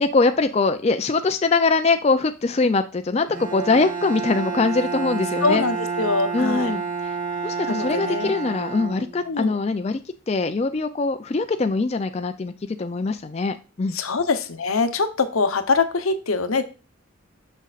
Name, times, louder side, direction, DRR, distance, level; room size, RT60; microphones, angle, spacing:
voice 1, 0.0-5.6 6.3-6.8 7.4-10.0 10.3-12.5 12.8-14.0, left 3 dB, 30° left, 8 dB, 0.4 m, -22 dB
Bowed string instrument, 3.3-9.4, right 5 dB, 40° right, 1.1 m, -29 dB
voice 2, 5.4-6.7 7.7-8.3 9.2-9.6 13.9-16.6, left 4 dB, 85° left, 9 dB, 0.9 m, -23 dB
6.5 x 6.3 x 2.4 m, 0.32 s
head